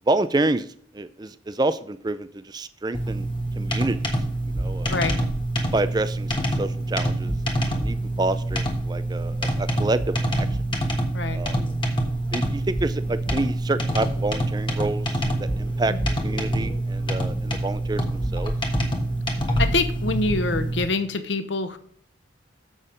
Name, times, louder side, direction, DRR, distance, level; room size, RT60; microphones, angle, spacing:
voice 1, 0.1-0.7 0.9-3.3 3.5-4.0 4.5-4.9 5.7-10.5 11.3-11.6 12.3-15.9 16.2-18.5, right 2 dB, 20° right, 13 dB, 0.4 m, -28 dB
sound 1, 2.9-20.9, right 1 dB, 25° left, 1.3 m, -26 dB
voice 2, 19.6-21.8, left 3 dB, 70° left, 10 dB, 0.9 m, -25 dB
7.4 x 6.4 x 5.1 m, 0.62 s
head